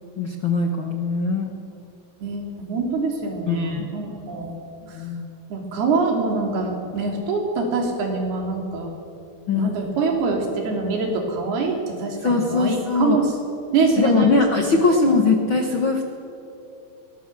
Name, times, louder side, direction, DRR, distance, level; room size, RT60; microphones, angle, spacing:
voice 1, 0.2-1.5 3.5-4.5 4.9-5.4 9.5-9.7 12.2-13.2 14.0-16.0, left 4 dB, 55° left, 2 dB, 1.4 m, -21 dB
voice 2, 2.2-4.6 5.5-8.9 9.5-13.3 13.7-14.4, right 3 dB, 90° right, 2 dB, 5.0 m, -24 dB
22.5 x 19.0 x 7.6 m, 2.7 s
omnidirectional pair, 4.4 m